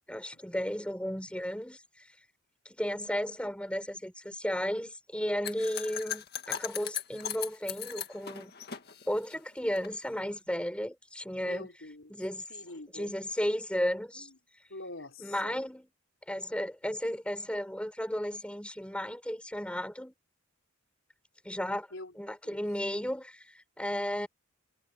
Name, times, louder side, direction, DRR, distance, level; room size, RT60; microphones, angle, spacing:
voice 1, 0.1-2.1 2.6-8.5 9.1-11.7 12.1-12.4 12.9-14.3 15.2-15.9 16.3-20.1 21.4-21.9 22.1-24.3, equal, 5° left, 4.9 m, -34 dB
sound 1, 5.4-9.9, left 10 dB, 50° left, 1.9 m, -38 dB
voice 2, 11.4-12.1 12.5-13.1 14.2-14.3 14.7-15.6 21.9-22.1 22.4-22.6, left 2 dB, 65° left, 4.3 m, -45 dB
head